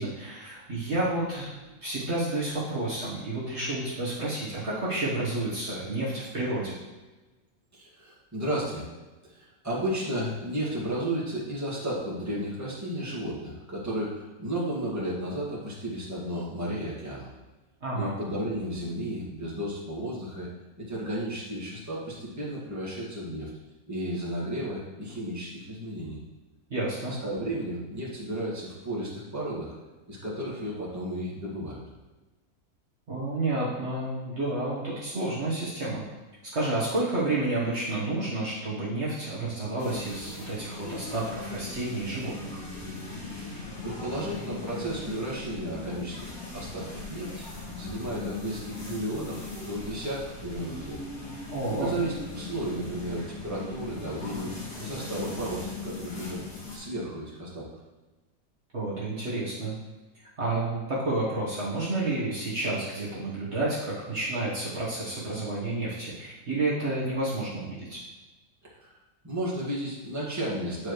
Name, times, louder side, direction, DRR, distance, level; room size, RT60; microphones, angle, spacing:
voice 1, 0.0-1.5 1.8-6.8 17.8-18.1 26.7-27.1 33.1-36.0 36.5-42.6 51.5-51.9 58.7-59.7 60.2-68.0, right 2 dB, 50° right, -7 dB, 1.6 m, -30 dB
voice 2, 7.7-8.9 9.2-17.3 17.9-20.5 20.8-23.5 23.9-26.2 27.2-29.7 30.1-31.8 43.3-47.5 47.8-51.0 51.8-56.4 56.7-57.7 68.8-68.9 69.2-70.9, right 1 dB, 10° right, -7 dB, 1.8 m, -33 dB
sound 1, 39.8-56.8, left 3 dB, 75° left, 2.1 m, -39 dB
9.5 x 4.8 x 3.2 m, 1.2 s
omnidirectional pair, 1.6 m